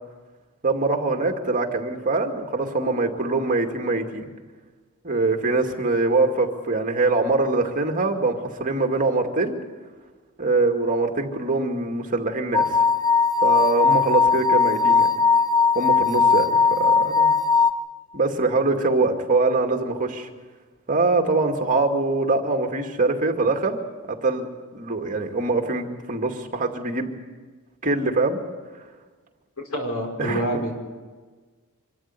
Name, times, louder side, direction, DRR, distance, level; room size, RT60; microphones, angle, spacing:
voice 1, 0.6-4.3 5.0-9.5 10.4-12.7 13.4-15.1 15.7-17.3 18.1-20.3 20.9-23.8 24.1-24.5 24.7-27.1 27.8-28.4 30.2-30.6, right 3 dB, 35° right, 4 dB, 2.2 m, -23 dB
sound 1, 12.5-17.7, left 5 dB, 15° left, 0.9 m, -19 dB
voice 2, 29.6-30.7, right 1 dB, 85° left, 2 dB, 5.2 m, -27 dB
25.5 x 13.5 x 9.7 m, 1.4 s
head